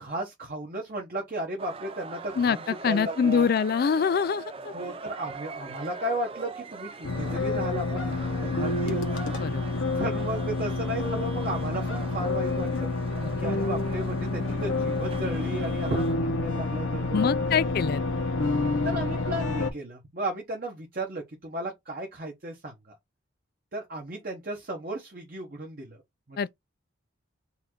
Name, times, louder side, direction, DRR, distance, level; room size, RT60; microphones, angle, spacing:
voice 1, 0.0-3.5 4.7-9.0 9.9-12.9 13.4-17.4 18.8-22.9 23.7-26.0 26.3-26.5, right 1 dB, 45° right, 1.0 m, -34 dB
sound 1, 1.6-16.1, right 4 dB, 30° right, 0.4 m, -43 dB
voice 2, 2.8-4.7 9.4-9.6 13.2-13.4 17.1-18.0 26.4-26.5, left 6 dB, 50° left, 0.3 m, -25 dB
sound 2, 7.0-19.7, left 3 dB, 75° left, 1.0 m, -28 dB
4.1 x 2.6 x 4.4 m
head